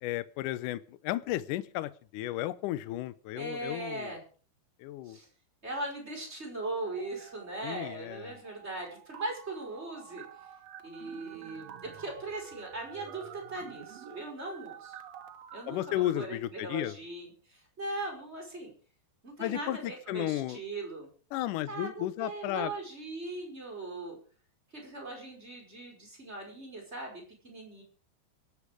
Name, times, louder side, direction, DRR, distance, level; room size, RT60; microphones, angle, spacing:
voice 1, 0.0-4.1 4.8-5.2 7.6-8.3 15.7-17.0 19.4-20.6 21.3-22.7, left 14 dB, 75° left, 15 dB, 2.0 m, -34 dB
voice 2, 3.3-4.2 5.0-5.3 5.6-10.2 10.8-15.0 15.5-18.7 19.2-21.1 21.7-24.2 24.7-27.8, right 2 dB, 15° right, 0 dB, 4.7 m, -39 dB
sound 1, 6.9-7.8 8.1-16.1, right 9 dB, 65° right, 1.6 m, -49 dB
24.0 x 8.5 x 4.9 m, 0.42 s
omnidirectional pair, 4.5 m